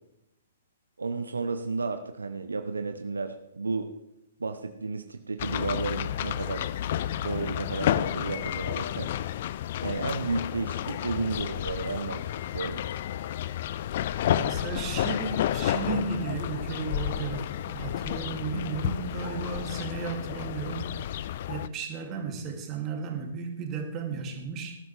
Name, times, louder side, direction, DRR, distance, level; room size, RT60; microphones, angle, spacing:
voice 1, 1.0-3.9 4.4-6.7 7.2-9.1 9.8-12.2 12.5-13.0, right 4 dB, 75° right, 8 dB, 0.9 m, -32 dB
sound 1, 5.4-21.7, left 11 dB, 50° left, 0.5 m, -31 dB
voice 2, 14.3-21.0 21.5-24.8, right 5 dB, 25° right, 2 dB, 2.7 m, -34 dB
19.5 x 12.0 x 3.4 m, 0.87 s
figure-of-eight pair, 115°, 0 cm